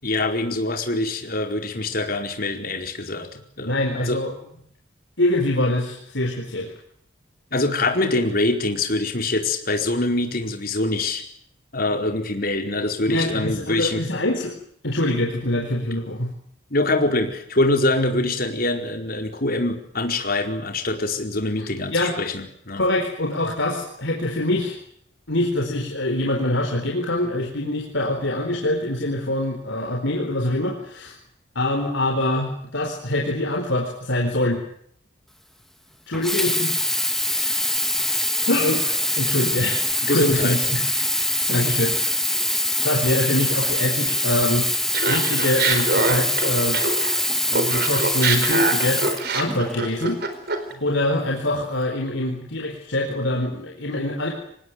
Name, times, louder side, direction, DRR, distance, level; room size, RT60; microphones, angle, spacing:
voice 1, 0.0-4.2 7.5-11.2 11.7-14.0 16.7-22.8 40.0-40.6 50.7-50.8, left 2 dB, 45° left, 4 dB, 4.7 m, -24 dB
voice 2, 3.6-4.3 5.2-6.7 13.1-14.5 14.8-16.3 21.6-22.2 22.8-24.8 25.3-31.1 31.5-34.6 36.1-37.0 37.3-37.7 38.5-39.8 40.1-40.8 41.1-41.9 42.8-46.8 47.5-49.0 49.3-50.2 50.8-54.3, left 1 dB, 65° left, 1 dB, 4.5 m, -24 dB
Sink (filling or washing), 36.1-49.9 50.6-50.7, left 1 dB, ahead, 1.7 m, -23 dB
Laughter, 44.9-47.2 47.5-50.7, right 3 dB, 50° right, 4.4 m, -24 dB
26.5 x 19.0 x 9.4 m, 0.69 s
head